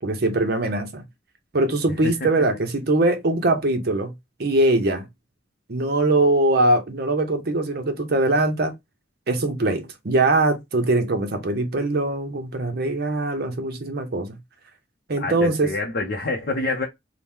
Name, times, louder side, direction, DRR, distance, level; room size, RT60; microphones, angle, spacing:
voice 1, 0.0-1.0 1.5-4.1 4.4-5.1 5.7-8.7 9.3-14.3 15.1-15.7, right 2 dB, 55° right, 0.7 m, -22 dB
voice 2, 15.2-16.9, left 2 dB, 55° left, 0.6 m, -27 dB
2.9 x 2.1 x 3.4 m
head